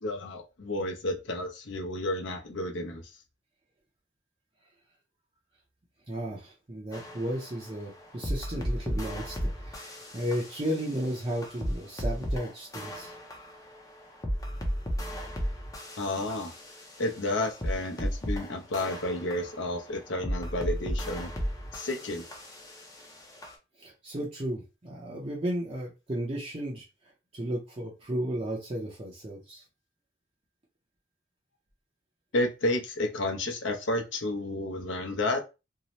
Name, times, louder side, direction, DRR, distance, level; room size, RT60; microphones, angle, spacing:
voice 1, 0.0-3.1 16.0-16.5 17.0-21.3 21.7-22.2 32.3-35.4, left 1 dB, 60° left, 0.6 m, -31 dB
voice 2, 6.1-13.1 23.8-26.9 27.3-29.6, equal, 30° right, 0.5 m, -34 dB
sound 1, 6.9-23.5, equal, 15° left, 0.5 m, -35 dB
2.7 x 2.0 x 2.9 m
head